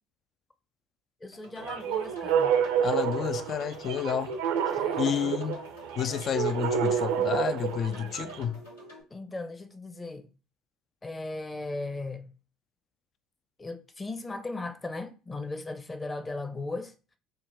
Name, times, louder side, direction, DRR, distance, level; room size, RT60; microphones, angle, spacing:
voice 1, 1.2-2.6 4.8-5.3 9.1-10.3 11.0-12.3 13.6-16.9, left 2 dB, 20° left, 0.7 m, -37 dB
sound 1, 1.3-9.0, left 1 dB, 85° left, 1.4 m, -49 dB
sound 2, 1.6-8.4, right 8 dB, 75° right, 0.6 m, -29 dB
voice 2, 2.8-4.4 5.0-5.6 6.0-8.6, left 8 dB, 45° left, 0.3 m, -30 dB
3.7 x 2.2 x 4.3 m
hypercardioid pair, 65°, 0 cm